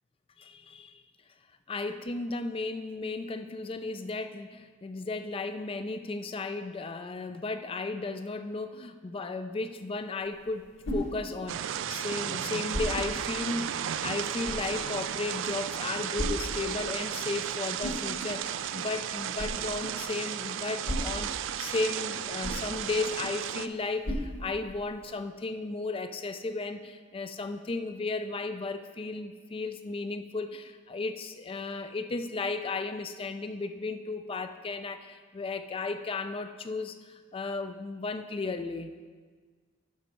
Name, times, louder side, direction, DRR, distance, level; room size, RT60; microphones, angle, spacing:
voice 1, 0.4-1.0 1.7-38.9, left 3 dB, 30° left, 9 dB, 0.4 m, -35 dB
sound 1, 10.2-25.1, equal, 65° left, 2.2 m, -40 dB
sound 2, 11.5-23.7, right 9 dB, 70° right, 0.3 m, -34 dB
10.5 x 6.0 x 4.4 m, 1.5 s
head